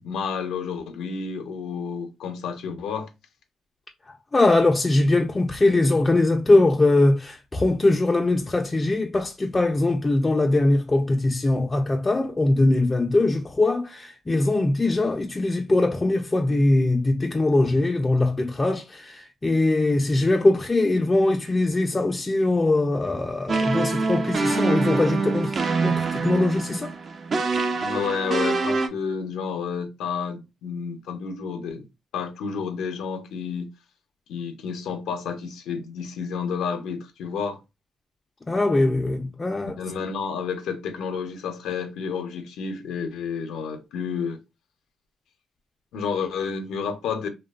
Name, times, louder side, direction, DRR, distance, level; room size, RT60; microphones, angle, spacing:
voice 1, 0.0-3.1 27.8-31.8 32.1-33.7 34.3-37.6 39.8-44.4 45.9-47.3, left 6 dB, 85° left, 0.5 m, -30 dB
voice 2, 4.3-26.9 38.5-39.8, left 2 dB, 25° left, 0.3 m, -21 dB
sound 1, 23.5-28.9, right 3 dB, 45° right, 0.4 m, -25 dB
2.6 x 2.2 x 2.3 m
cardioid pair, 90°, 0 cm